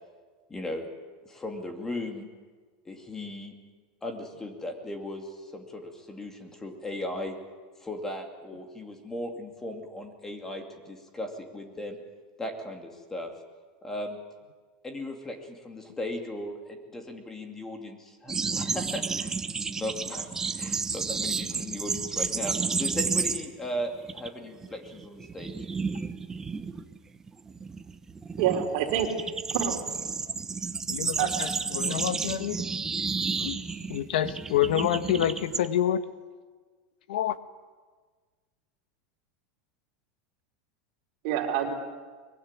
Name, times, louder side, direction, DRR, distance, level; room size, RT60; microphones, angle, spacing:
voice 1, 0.5-0.9 1.2-2.3 2.9-3.5 4.0-7.3 7.8-12.0 12.4-13.3 13.8-14.2 14.8-19.3 19.6-20.3 20.6-25.5, left 1 dB, 10° left, 4 dB, 2.5 m, -37 dB
sound 1, 18.3-23.7 23.9-24.3 24.6-35.7, right 5 dB, 10° right, 0.9 m, -31 dB
voice 2, 28.4-29.1 29.5-29.7 31.2-31.3 41.2-41.7, right 10 dB, 50° right, 3 dB, 4.3 m, -26 dB
voice 3, 30.9-32.6 33.4-33.6 33.9-36.0 37.1-37.4, left 11 dB, 90° left, 11 dB, 1.5 m, -27 dB
23.5 x 22.0 x 9.8 m, 1.4 s
supercardioid pair, 170°, 5 cm